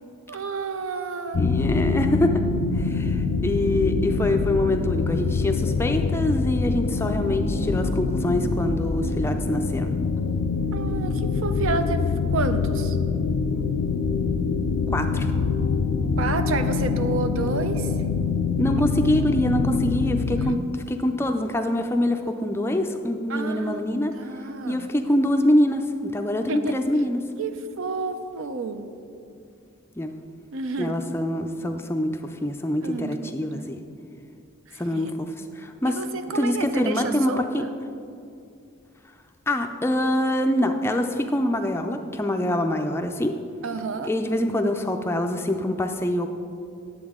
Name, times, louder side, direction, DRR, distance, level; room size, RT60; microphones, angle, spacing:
voice 1, 0.3-1.5 10.7-13.0 16.2-17.9 20.4-20.5 23.3-23.9 24.2-24.9 26.5-26.8 27.4-28.9 30.5-31.0 32.8-33.7 34.7-35.1 35.8-37.7 43.6-44.1, right 4 dB, 75° right, 9 dB, 0.5 m, -30 dB
sound 1, 1.3-20.5, left 4 dB, 70° left, 0.4 m, -25 dB
voice 2, 1.4-2.4 2.7-9.9 13.5-13.7 14.9-15.3 18.6-24.1 24.7-27.2 30.0-30.1 30.8-33.8 34.8-36.0 36.3-37.6 39.5-43.3 44.0-46.3, left 1 dB, 10° left, 5 dB, 0.3 m, -25 dB
10.5 x 7.9 x 3.6 m, 2.5 s
head